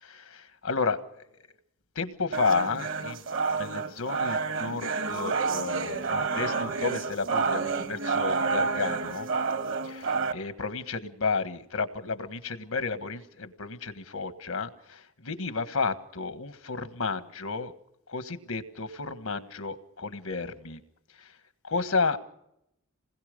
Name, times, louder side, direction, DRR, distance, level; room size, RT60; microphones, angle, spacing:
voice 1, 0.0-1.2 1.9-3.2 3.6-9.3 9.8-17.7 18.1-20.8 21.2-21.3 21.6-22.2, left 4 dB, 85° left, 11 dB, 1.4 m, -32 dB
sound 1, 2.3-10.3, right 4 dB, 65° right, 1.4 m, -29 dB
27.5 x 20.5 x 5.2 m, 0.81 s
head